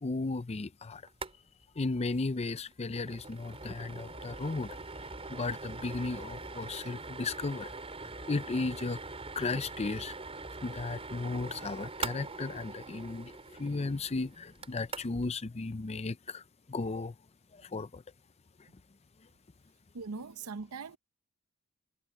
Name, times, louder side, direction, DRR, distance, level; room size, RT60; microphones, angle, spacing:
voice 1, 0.0-1.0 1.8-4.8 5.3-7.7 8.3-9.0 9.4-10.1 10.6-16.4 16.7-17.1 17.5-18.0, left 3 dB, 30° left, 0.5 m, -35 dB
sound 1, 1.1-1.4 1.6-1.7 2.0-2.2 2.6-15.3, right 3 dB, 25° right, 4.2 m, -43 dB
voice 2, 19.9-21.0, right 4 dB, 75° right, 0.7 m, -40 dB
head